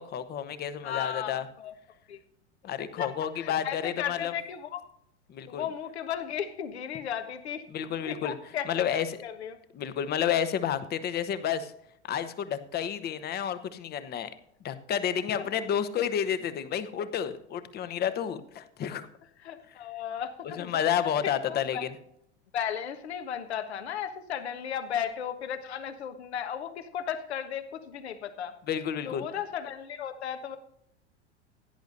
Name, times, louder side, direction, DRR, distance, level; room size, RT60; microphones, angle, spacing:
voice 1, 0.0-1.4 2.6-4.3 5.3-5.6 7.7-8.3 8.7-9.2 9.7-11.7 12.0-14.3 14.6-19.1 20.6-21.9 28.7-29.2, left 9 dB, 25° left, 13 dB, 1.0 m, -30 dB
voice 2, 0.8-1.7 2.1-2.2 2.8-4.8 5.5-7.6 8.0-9.6 19.4-21.8 22.5-28.6 29.1-30.6, left 9 dB, 65° left, 9 dB, 1.4 m, -35 dB
16.5 x 10.5 x 2.6 m, 0.73 s
figure-of-eight pair, 85°, 35 cm